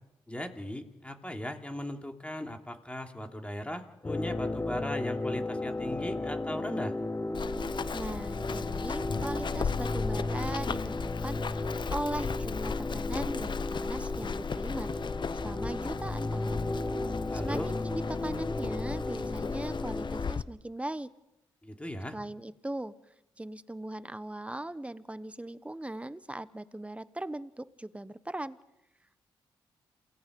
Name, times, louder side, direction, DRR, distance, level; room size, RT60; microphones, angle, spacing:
voice 1, 0.3-6.9 17.3-17.7 21.6-22.1, left 1 dB, 10° left, 4 dB, 3.2 m, -38 dB
sound 1, 4.0-20.3, left 2 dB, 30° left, 1.2 m, -34 dB
Run, 7.3-20.4, left 6 dB, 50° left, 0.7 m, -36 dB
voice 2, 7.9-14.9 15.4-16.6 17.4-21.1 22.1-22.9 23.4-28.6, right 1 dB, 10° right, 15 dB, 1.1 m, -39 dB
27.5 x 17.5 x 5.4 m, 0.88 s
supercardioid pair, 50°, 10 cm